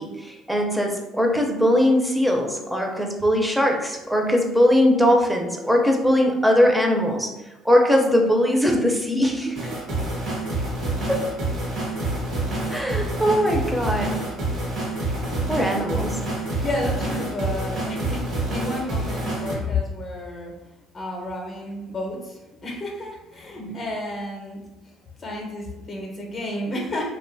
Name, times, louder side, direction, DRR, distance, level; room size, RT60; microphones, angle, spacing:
voice 1, 0.0-7.3 7.6-9.6 11.1-11.3 12.7-14.2 15.5-16.2 23.6-23.8, equal, 5° right, 1 dB, 0.5 m, -20 dB
sound 1, 9.5-19.6, right 2 dB, 70° right, 1.1 m, -27 dB
voice 2, 16.6-20.5 20.9-24.6 25.2-27.1, left 2 dB, 40° left, -1 dB, 0.7 m, -31 dB
2.6 x 2.2 x 2.6 m, 1.0 s
supercardioid pair, 80°, 0 cm